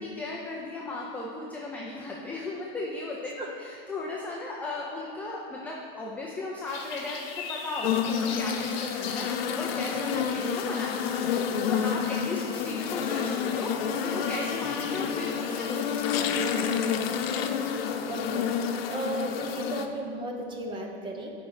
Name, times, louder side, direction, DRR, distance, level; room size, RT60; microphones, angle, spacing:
voice 1, 0.0-7.2 7.5-13.7 14.0-16.4 17.0-17.1, left 2 dB, 5° left, -3 dB, 0.4 m, -36 dB
sound 1, 6.7-16.2, left 5 dB, 50° left, 1.3 m, -43 dB
sound 2, 7.8-19.9, left 7 dB, 90° left, 0.7 m, -29 dB
voice 2, 18.1-18.5 18.9-21.3, right 2 dB, 15° right, 2 dB, 0.7 m, -35 dB
8.8 x 5.2 x 4.8 m, 2.3 s
supercardioid pair, 160°, 29 cm